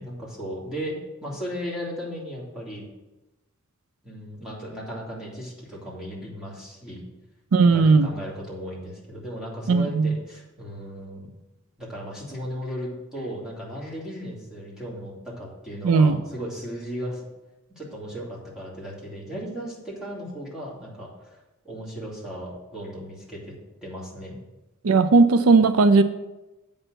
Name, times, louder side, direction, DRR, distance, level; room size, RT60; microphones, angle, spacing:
voice 1, 0.0-2.8 4.0-7.0 7.6-11.3 11.8-17.2 17.7-21.4 21.6-23.5 23.8-24.4, equal, 5° right, -6 dB, 2.6 m, -36 dB
voice 2, 7.5-8.1 9.7-10.2 15.8-16.2 24.8-26.0, right 4 dB, 80° right, 11 dB, 0.5 m, -17 dB
7.9 x 5.4 x 6.2 m, 1.0 s
head